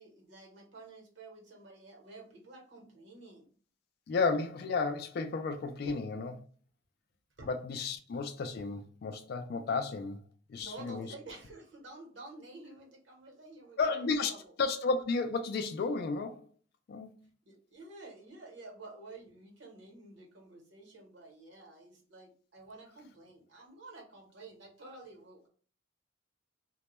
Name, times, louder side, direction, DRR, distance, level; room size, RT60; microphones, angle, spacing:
voice 1, 0.0-3.5 5.8-5.9 7.4-7.5 10.5-14.5 17.4-25.5, right 2 dB, 60° right, 0.9 m, -51 dB
voice 2, 4.1-6.3 7.5-10.2 10.5-11.1 13.8-14.3 14.6-16.4 16.9-17.1, left 4 dB, 50° left, 0.3 m, -32 dB
2.1 x 2.1 x 2.9 m
head